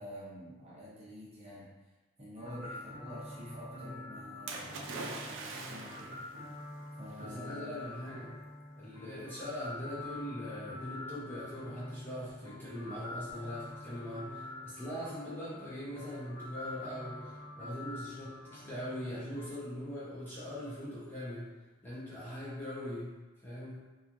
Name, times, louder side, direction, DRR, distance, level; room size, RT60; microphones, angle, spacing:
voice 1, 0.0-1.7 2.2-6.4 7.0-7.9, equal, 30° right, -8 dB, 0.7 m, -47 dB
sound 1, 2.4-19.5, left 2 dB, 70° left, 1.1 m, -46 dB
Splash splatter, 4.5-6.3 7.2-7.3, right 3 dB, 70° right, 0.4 m, -42 dB
voice 2, 7.2-8.4 8.8-21.5 21.8-23.1 23.4-23.8, equal, 10° left, -10 dB, 0.6 m, -41 dB
2.9 x 2.4 x 2.5 m, 1.2 s
head